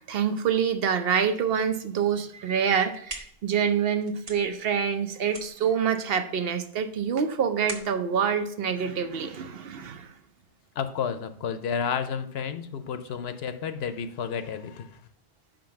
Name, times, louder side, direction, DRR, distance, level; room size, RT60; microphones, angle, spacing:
voice 1, 0.0-10.1, right 7 dB, 65° right, 9 dB, 0.8 m, -26 dB
sound 1, 2.7-9.5, right 3 dB, 40° right, 0.9 m, -45 dB
voice 2, 10.8-15.0, left 7 dB, 70° left, 10 dB, 0.8 m, -31 dB
5.2 x 5.2 x 5.7 m, 0.64 s
omnidirectional pair, 1.1 m